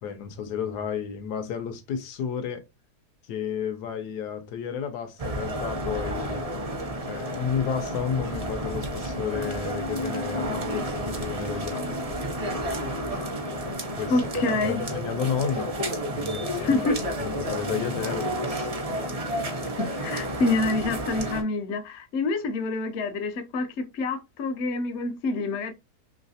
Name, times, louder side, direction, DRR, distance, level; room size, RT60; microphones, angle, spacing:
voice 1, 0.0-2.6 3.3-6.5 7.1-12.0 13.6-14.1 14.6-15.7 16.1-16.8 17.2-18.7, left 7 dB, 75° left, 1.2 m, -32 dB
sound 1, 5.2-21.4, equal, 45° right, 0.5 m, -31 dB
voice 2, 14.1-14.9 16.6-17.0 19.8-25.7, left 3 dB, 60° left, 0.7 m, -27 dB
3.2 x 3.0 x 2.7 m
omnidirectional pair, 1.7 m